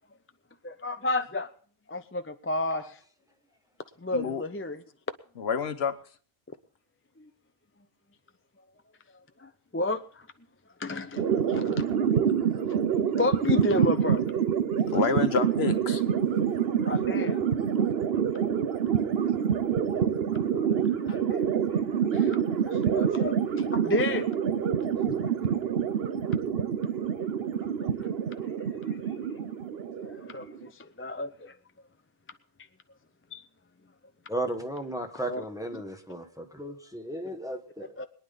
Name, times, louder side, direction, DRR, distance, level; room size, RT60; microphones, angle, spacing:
voice 1, 0.6-1.5 1.9-3.0 4.0-4.8 7.2-7.3 9.4-10.0 10.8-11.8 12.4-14.2 16.9-17.4 20.5-21.2 22.1-22.4 22.6-23.4 23.8-24.3 24.8-25.3 27.8-27.9 30.0-31.5 33.3-33.4 35.3-35.4 38.0-38.1, left 2 dB, 15° left, 0.4 m, -32 dB
voice 2, 4.1-4.4 5.4-6.0 14.9-16.0 25.1-25.2, left 6 dB, 70° left, 1.2 m, -28 dB
sound 1, 11.2-30.7, right 8 dB, 65° right, 1.0 m, -27 dB
voice 3, 34.3-37.9, right 1 dB, 5° right, 1.2 m, -35 dB
22.0 x 10.0 x 4.0 m
omnidirectional pair, 1.1 m